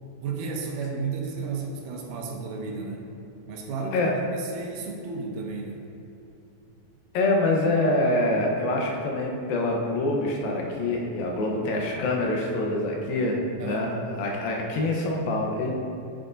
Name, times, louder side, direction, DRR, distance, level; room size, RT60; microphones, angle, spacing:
voice 1, 0.2-3.1 3.5-5.9 13.6-13.9, right 4 dB, 75° right, 0 dB, 2.1 m, -33 dB
voice 2, 7.1-13.9 14.2-15.7, left 2 dB, 80° left, -1 dB, 2.7 m, -25 dB
9.5 x 7.8 x 2.6 m, 2.8 s
omnidirectional pair, 4.2 m